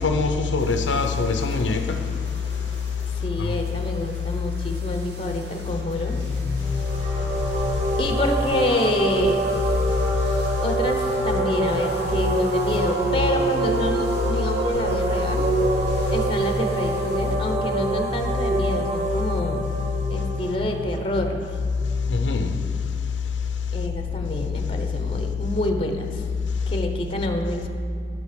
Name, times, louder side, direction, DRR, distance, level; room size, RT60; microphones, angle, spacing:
voice 1, 0.0-2.0 3.4-3.5 22.1-22.5, left 4 dB, 90° left, 0.7 m, -23 dB
sound 1, 0.6-17.4, right 1 dB, 65° right, 1.4 m, -44 dB
voice 2, 3.2-6.2 8.0-9.5 10.6-15.5 16.1-19.6 20.1-21.5 23.7-26.2 26.7-27.7, left 1 dB, 30° left, 0.9 m, -27 dB
sound 2, 6.1-22.5, left 2 dB, 5° right, 1.1 m, -33 dB
sound 3, 6.6-21.3, right 3 dB, 35° right, 0.7 m, -26 dB
11.0 x 8.3 x 5.1 m
head